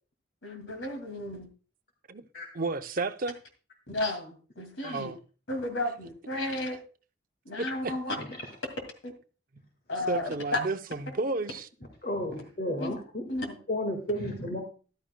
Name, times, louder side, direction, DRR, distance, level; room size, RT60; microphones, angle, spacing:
voice 1, 0.4-1.5 3.9-5.1 5.5-6.8 7.5-8.2 9.0-9.1 9.9-10.6 12.3-12.4 12.8-12.9 13.3-13.5, left 2 dB, 85° left, 2.3 m, -33 dB
voice 2, 2.5-3.4 4.8-5.2 7.8-7.9 10.1-11.7, right 3 dB, 45° right, 0.6 m, -32 dB
voice 3, 12.0-13.3 13.7-14.6, left 1 dB, 50° left, 1.8 m, -32 dB
14.0 x 11.5 x 2.2 m
head